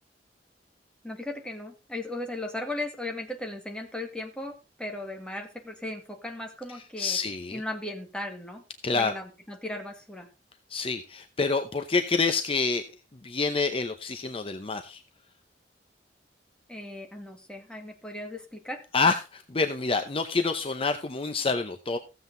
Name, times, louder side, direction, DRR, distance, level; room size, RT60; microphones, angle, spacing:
voice 1, 1.0-7.2 7.5-8.6 8.9-10.3 16.7-18.8, left 1 dB, 5° left, 3 dB, 1.9 m, -37 dB
voice 2, 7.0-7.6 8.8-9.1 10.7-12.8 13.2-15.0 18.9-22.0, left 4 dB, 30° left, 7 dB, 0.7 m, -27 dB
15.0 x 7.8 x 3.9 m, 0.28 s
head